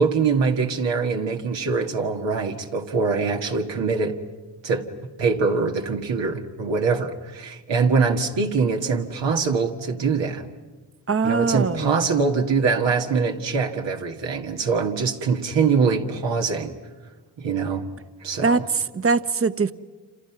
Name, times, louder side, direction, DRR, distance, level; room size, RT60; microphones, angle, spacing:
voice 1, 0.0-4.2 4.6-4.9 5.2-10.5 11.2-16.7 17.4-17.9 18.2-18.6, right 5 dB, 80° right, 2.0 m, -23 dB
voice 2, 11.1-11.9 18.4-19.7, right 4 dB, 30° right, 1.0 m, -22 dB
28.5 x 27.0 x 6.0 m
supercardioid pair, 45°, 43 cm